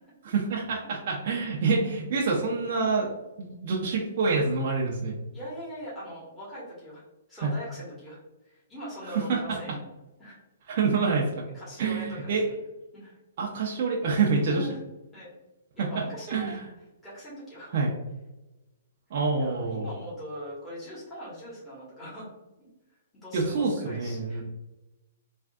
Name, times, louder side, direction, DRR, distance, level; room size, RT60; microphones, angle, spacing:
voice 1, 0.2-3.1 3.4-5.1 7.4-7.5 9.1-9.4 10.7-11.3 11.8-12.4 13.4-14.7 16.3-16.6 17.7-17.9 19.1-19.9 23.3-24.4, right 4 dB, 50° right, -3 dB, 0.6 m, -27 dB
voice 2, 5.3-7.0 7.3-8.2 8.5-9.8 10.2-10.4 11.5-12.6 12.9-13.2 14.5-14.8 15.1-15.3 15.7-16.6 17.0-17.8 19.4-22.3 22.6-22.7 23.1-24.4, equal, 10° left, -9 dB, 1.3 m, -41 dB
3.4 x 2.5 x 2.4 m, 1.0 s
hypercardioid pair, 135°, 0 cm